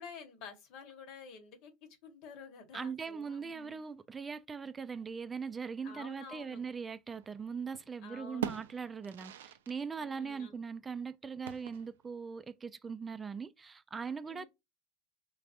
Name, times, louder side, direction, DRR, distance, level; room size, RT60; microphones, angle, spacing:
voice 1, 0.0-3.8 5.8-6.6 8.0-8.6 10.0-10.6 14.2-14.5, left 5 dB, 60° left, 1.2 m, -50 dB
voice 2, 2.7-14.5, right 5 dB, 20° right, 0.4 m, -40 dB
sound 1, 7.1-7.9 8.2-9.8 10.1-10.2 11.4-12.1, right 11 dB, 90° right, 0.4 m, -42 dB
4.1 x 3.4 x 2.5 m
supercardioid pair, 110°, 0 cm